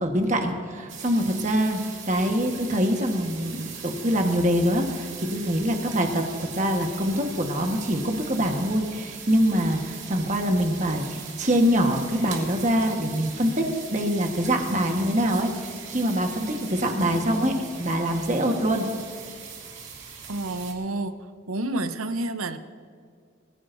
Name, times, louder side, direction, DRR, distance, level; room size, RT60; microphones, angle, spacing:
voice 1, 0.0-18.9, equal, 35° right, 3 dB, 1.4 m, -24 dB
sound 1, 0.9-20.7, right 6 dB, 70° right, 2.3 m, -40 dB
voice 2, 17.0-17.7 20.3-21.2 21.5-22.6, right 2 dB, 90° right, 10 dB, 0.8 m, -30 dB
22.0 x 15.0 x 2.7 m, 2.1 s
head